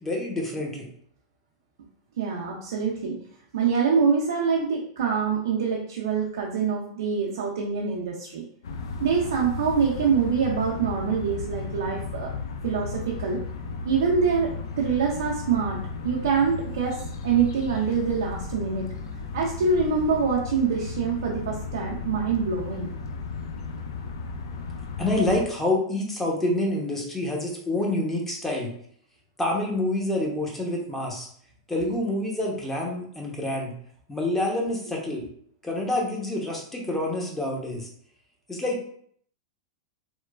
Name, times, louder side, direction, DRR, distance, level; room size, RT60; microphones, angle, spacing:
voice 1, 0.0-0.8 25.0-28.7 29.4-31.3 31.7-33.7 34.1-35.2 35.6-37.9 38.5-38.8, left 1 dB, 10° left, -1 dB, 0.8 m, -27 dB
voice 2, 2.2-3.2 3.5-8.4 9.0-12.3 12.6-13.4 13.8-15.8 16.0-18.9 19.3-22.9, right 5 dB, 75° right, -3 dB, 0.4 m, -25 dB
sound 1, 8.6-25.4, left 4 dB, 75° left, 0.4 m, -35 dB
3.0 x 2.1 x 2.3 m, 0.63 s
hypercardioid pair, 110°, 2 cm